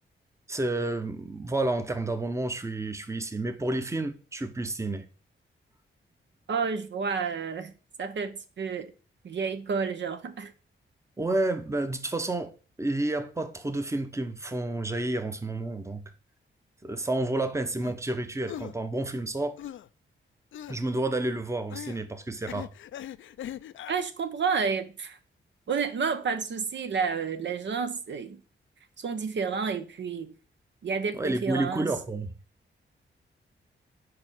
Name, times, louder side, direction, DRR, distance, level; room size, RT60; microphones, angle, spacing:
voice 1, 0.5-5.1 11.2-12.5 12.8-16.0 16.8-19.6 20.7-22.7 31.1-32.3, right 2 dB, 15° right, 0.8 m, -30 dB
voice 2, 6.5-7.7 8.0-8.9 9.2-10.5 23.9-25.2 25.7-28.4 29.0-30.3 30.8-31.9, right 5 dB, 60° right, 0.7 m, -30 dB
sound 1, 17.8-18.0 18.5-18.7 19.6-19.9 20.5-20.8 21.7-22.0 22.5-24.0, left 11 dB, 70° left, 0.4 m, -40 dB
4.9 x 4.9 x 5.9 m
cardioid pair, 85°, 21 cm